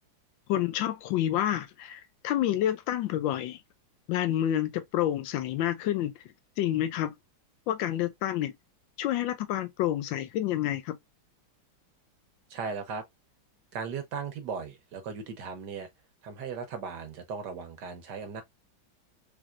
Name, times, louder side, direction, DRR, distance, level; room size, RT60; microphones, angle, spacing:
voice 1, 0.5-3.6 4.1-6.1 6.6-7.1 7.7-8.5 9.0-11.0, left 12 dB, 80° left, 1.3 m, -28 dB
voice 2, 12.5-13.0 13.7-15.9 16.2-18.4, right 5 dB, 65° right, 1.3 m, -37 dB
3.5 x 3.3 x 2.4 m
omnidirectional pair, 2.1 m